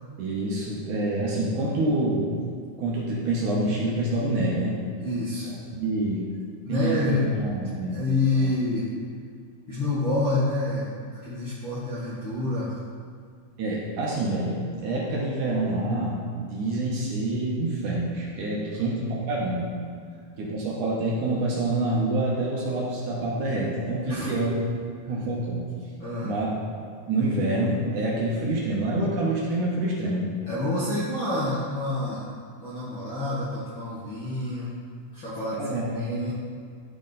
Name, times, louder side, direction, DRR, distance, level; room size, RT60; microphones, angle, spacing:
voice 1, 0.2-2.3 2.8-4.8 5.3-5.4 5.7-6.3 6.7-8.0 13.6-19.7 20.4-24.6 25.1-25.7 26.2-26.5 27.1-30.3 35.5-36.3, right 2 dB, 70° right, -4 dB, 2.2 m, -27 dB
voice 2, 5.0-5.5 6.6-7.3 7.9-8.9 9.7-12.7 18.7-18.8 24.1-24.3 26.0-26.3 30.5-32.2 32.6-34.7 35.1-36.3, left 2 dB, 50° left, -10 dB, 1.5 m, -28 dB
12.5 x 4.4 x 4.0 m, 2.2 s
omnidirectional pair, 4.3 m